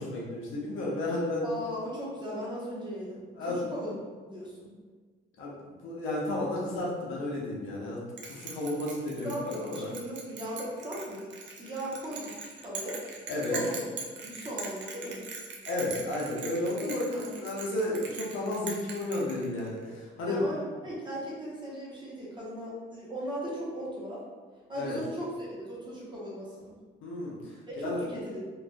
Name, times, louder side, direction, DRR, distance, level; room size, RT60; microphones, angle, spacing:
voice 1, 0.0-1.5 3.4-3.6 5.4-9.9 13.3-13.6 15.7-20.4 24.7-25.0 27.0-27.6 27.8-28.1, left 1 dB, 80° left, -4 dB, 0.6 m, -32 dB
voice 2, 1.4-3.2 3.5-4.0 4.2-4.8 9.2-12.4 12.6-13.0 13.5-13.8 14.2-15.2 17.1-17.3 20.3-24.2 24.7-26.7 27.7-28.4, equal, 25° right, -6 dB, 0.8 m, -38 dB
Bell, 8.2-19.8, right 4 dB, 65° right, 0.5 m, -41 dB
2.4 x 2.3 x 2.2 m, 1.4 s
cardioid pair, 90°, 20 cm